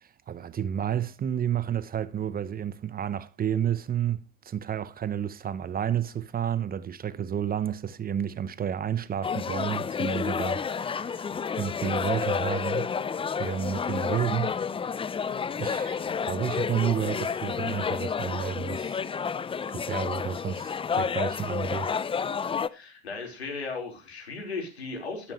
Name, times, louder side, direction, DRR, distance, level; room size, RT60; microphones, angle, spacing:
voice 1, 0.0-11.3 11.6-12.9 13.4-14.6 15.6-19.0 19.7-22.0, right 9 dB, 30° right, 0.9 m, -31 dB
sound 1, 9.2-22.7, left 6 dB, 15° left, 0.6 m, -30 dB
voice 2, 22.7-25.3, left 4 dB, 85° left, 4.9 m, -36 dB
13.5 x 12.5 x 3.2 m
hypercardioid pair, 75°, 31 cm